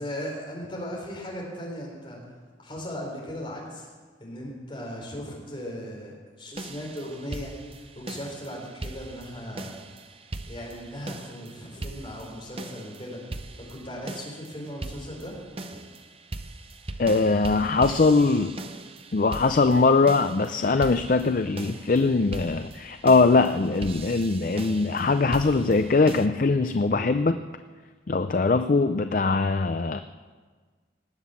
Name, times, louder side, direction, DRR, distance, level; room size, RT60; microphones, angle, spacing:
voice 1, 0.0-2.2 2.6-3.9 4.2-7.5 7.9-9.8 10.4-15.4 15.7-15.8, equal, 30° left, -3 dB, 4.5 m, -37 dB
sound 1, 6.6-26.3, right 2 dB, 30° right, 0.7 m, -40 dB
voice 2, 17.0-18.6 19.1-27.4 28.1-30.0, left 3 dB, 45° left, 9 dB, 0.5 m, -21 dB
19.0 x 7.8 x 8.5 m, 1.5 s
head